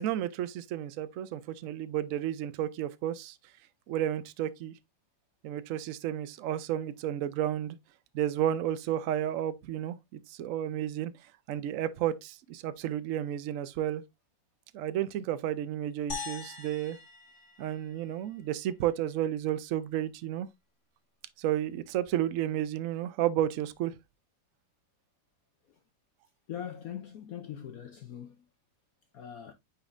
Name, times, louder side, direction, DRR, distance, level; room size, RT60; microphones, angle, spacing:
voice 1, 0.0-3.4 3.9-4.7 5.4-7.8 8.1-11.1 11.5-14.0 14.7-17.0 17.6-20.5 21.4-24.0, right 11 dB, 90° right, 0.7 m, -32 dB
sound 1, 16.1-18.5, left 4 dB, 40° left, 1.7 m, -42 dB
voice 2, 26.5-28.4 29.1-29.5, left 9 dB, 70° left, 0.8 m, -41 dB
9.0 x 4.2 x 2.5 m
omnidirectional pair, 2.1 m